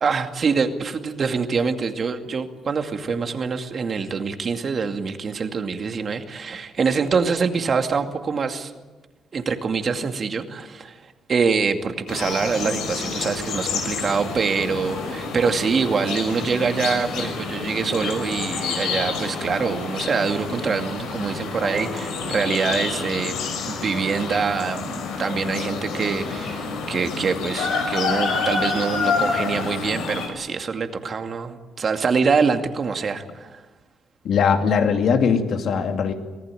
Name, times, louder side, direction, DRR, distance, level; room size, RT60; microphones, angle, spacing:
voice 1, 0.0-8.7 9.3-11.0 11.3-23.4 23.7-33.6, right 5 dB, 45° right, 6 dB, 2.3 m, -25 dB
sound 1, 12.1-30.3, left 4 dB, 90° left, 5.5 m, -28 dB
voice 2, 34.2-36.1, left 6 dB, 65° left, 5 dB, 2.6 m, -20 dB
25.0 x 17.5 x 9.1 m, 1.3 s
cardioid pair, 90°, 0 cm